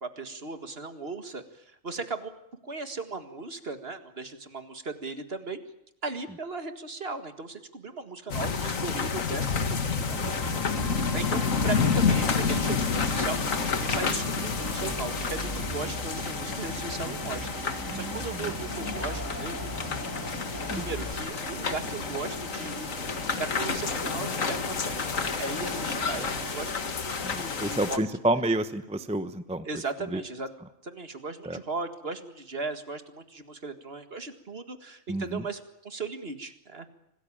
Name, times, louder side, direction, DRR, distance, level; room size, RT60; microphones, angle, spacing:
voice 1, 0.0-2.3 2.6-5.6 6.0-19.7 20.7-28.0 29.6-30.5 30.8-36.9, right 3 dB, 50° right, 8 dB, 2.1 m, -37 dB
sound 1, 8.3-28.0, left 5 dB, 80° left, 2.1 m, -30 dB
sound 2, 10.1-21.1, left 1 dB, 15° left, 2.0 m, -39 dB
voice 2, 10.2-10.6 17.9-18.5 20.7-20.8 26.2-26.3 27.2-29.7 30.1-30.2 31.4-31.6 35.1-35.5, right 1 dB, 5° right, 11 dB, 0.8 m, -30 dB
sound 3, 10.7-26.8, right 5 dB, 80° right, 2.2 m, -43 dB
26.0 x 19.0 x 8.8 m, 0.82 s
omnidirectional pair, 1.4 m